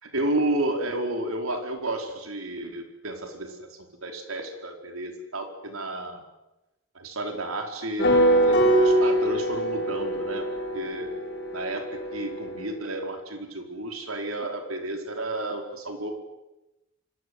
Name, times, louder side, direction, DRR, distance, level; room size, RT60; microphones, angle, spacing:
voice 1, 0.0-6.2 6.9-10.5 10.7-11.1 11.5-16.1, right 1 dB, 85° right, 4 dB, 4.8 m, -32 dB
sound 1, 8.0-12.7, right 1 dB, 55° left, 6.8 m, -23 dB
27.0 x 25.0 x 8.2 m, 0.99 s
head